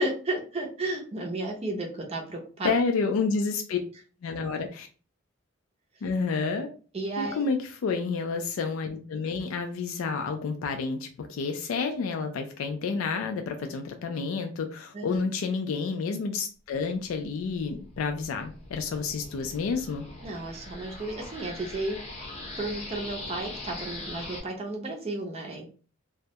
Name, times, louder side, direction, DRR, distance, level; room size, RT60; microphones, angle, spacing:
voice 1, 0.0-2.7 4.5-4.6 6.9-7.5 14.9-15.2 20.2-22.0 22.6-25.7, right 2 dB, 30° right, 1 dB, 0.4 m, -33 dB
voice 2, 2.6-3.8 4.2-4.9 6.0-6.7 7.2-20.1, left 4 dB, 85° left, 5 dB, 0.3 m, -29 dB
sound 1, 17.1-24.4, left 2 dB, 30° left, 0.6 m, -41 dB
2.2 x 2.0 x 2.7 m, 0.39 s
head